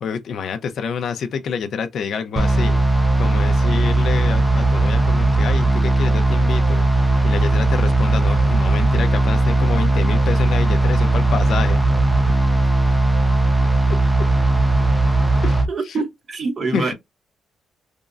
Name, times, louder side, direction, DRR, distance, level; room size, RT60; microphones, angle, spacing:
voice 1, 0.0-2.8 3.2-6.9 7.2-11.8 13.9-14.0 15.4-15.6 15.9-16.0 16.7-16.9, left 6 dB, 50° left, 0.5 m, -27 dB
sound 1, 2.4-15.7, right 2 dB, 5° right, 0.4 m, -17 dB
voice 2, 15.7-16.9, right 4 dB, 35° right, 0.7 m, -25 dB
3.6 x 2.0 x 2.4 m
cardioid pair, 175°, 0 cm